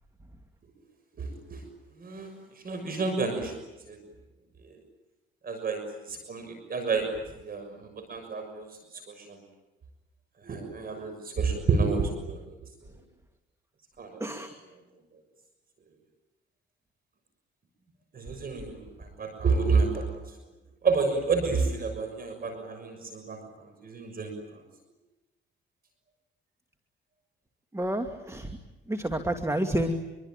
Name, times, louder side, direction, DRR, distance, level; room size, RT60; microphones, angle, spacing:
voice 1, 1.2-1.6 2.0-2.3 2.6-3.5 3.9-4.0 4.6-4.7 5.4-5.8 6.1-7.1 7.4-8.6 8.9-9.4 10.4-12.4 14.0-14.5 18.1-20.2 20.8-24.3, right 4 dB, 50° right, 6 dB, 6.5 m, -29 dB
voice 2, 27.7-28.5 28.9-30.0, right 1 dB, 15° right, 6 dB, 2.5 m, -29 dB
27.0 x 23.5 x 9.1 m, 1.0 s
cardioid pair, 90°, 20 cm